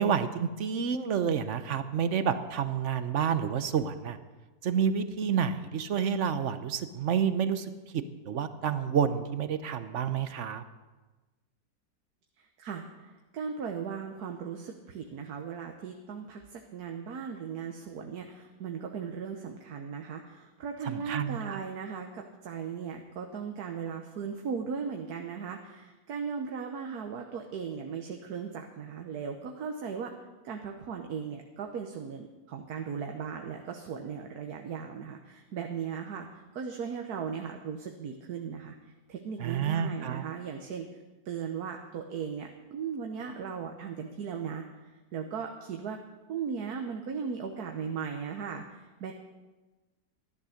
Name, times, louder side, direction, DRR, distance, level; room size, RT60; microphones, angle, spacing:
voice 1, 0.0-4.2 4.6-10.6 20.9-21.6 39.4-40.2, right 7 dB, 55° right, 11 dB, 1.0 m, -29 dB
voice 2, 12.4-30.1 30.4-36.3 36.5-40.9 41.2-46.0 46.3-49.1, right 6 dB, 75° right, 3 dB, 1.5 m, -37 dB
13.5 x 11.0 x 6.4 m, 1.2 s
omnidirectional pair, 1.7 m